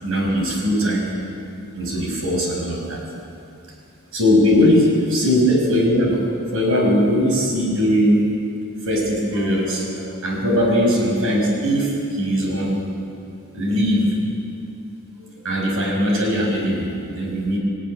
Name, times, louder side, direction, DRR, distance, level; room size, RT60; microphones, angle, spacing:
voice 1, 0.0-1.1 1.7-3.0 4.1-6.2 6.5-8.3 8.8-12.8 13.5-14.2 15.2-17.6, equal, 70° right, 0 dB, 5.8 m, -20 dB
20.0 x 15.5 x 9.9 m, 2.6 s
head